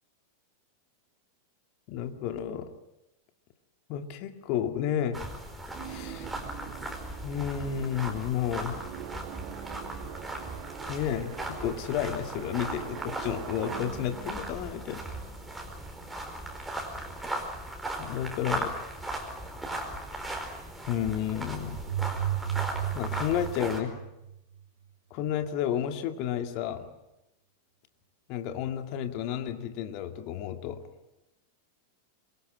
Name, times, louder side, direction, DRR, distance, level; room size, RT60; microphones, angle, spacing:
voice 1, 1.9-2.7 3.9-5.2 5.8-6.3 7.2-8.9 10.9-15.0 18.0-18.7 20.9-21.8 22.9-24.0 25.1-26.9 28.3-30.8, left 10 dB, 45° left, 6 dB, 2.2 m, -31 dB
sound 1, 5.1-23.8, right 1 dB, 5° right, 4.7 m, -38 dB
sound 2, 5.7-15.7, right 12 dB, 45° right, 1.5 m, -44 dB
sound 3, 21.7-24.6, right 11 dB, 60° right, 4.0 m, -33 dB
26.5 x 22.5 x 7.6 m, 0.90 s
figure-of-eight pair, 90°, 0 cm